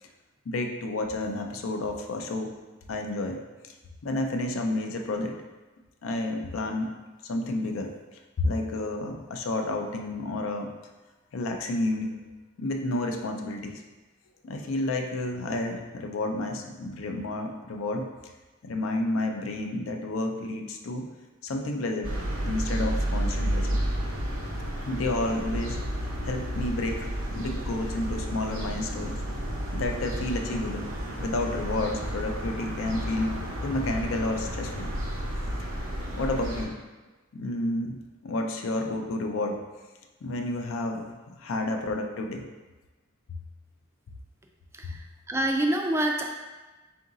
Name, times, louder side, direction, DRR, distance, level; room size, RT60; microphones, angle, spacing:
voice 1, 0.5-2.5 2.9-3.4 4.0-5.4 6.0-6.9 7.2-10.7 11.3-12.2 12.6-13.8 14.4-18.1 18.6-21.1 21.4-22.2 22.4-23.8 24.8-25.8 26.2-29.2 29.7-30.9 31.2-33.4 33.6-34.9 36.1-36.7 37.3-39.6 40.2-42.5 43.3-43.4 44.8-45.0, left 2 dB, 80° left, 3 dB, 0.4 m, -30 dB
sound 1, 22.0-36.6, equal, 90° right, 0.8 m, -31 dB
voice 2, 45.3-46.3, right 1 dB, 15° right, 2 dB, 0.3 m, -26 dB
3.8 x 2.6 x 3.8 m, 1.2 s
head